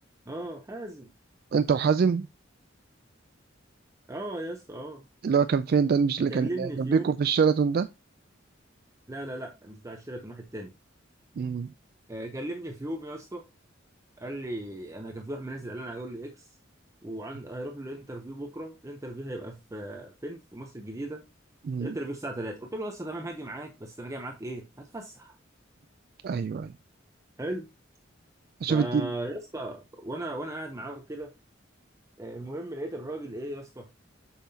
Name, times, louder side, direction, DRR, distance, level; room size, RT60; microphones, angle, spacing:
voice 1, 0.3-1.1 4.1-5.0 6.3-7.1 9.1-10.7 12.1-13.4 14.2-16.5 17.0-21.2 21.8-25.4 27.4-27.7 28.7-31.3 32.2-33.9, right 1 dB, 15° right, 0.7 m, -37 dB
voice 2, 1.5-2.3 5.2-7.9 11.4-11.7 21.6-22.0 26.2-26.7 28.6-29.1, right 6 dB, 50° right, 0.3 m, -24 dB
7.2 x 5.7 x 2.8 m
head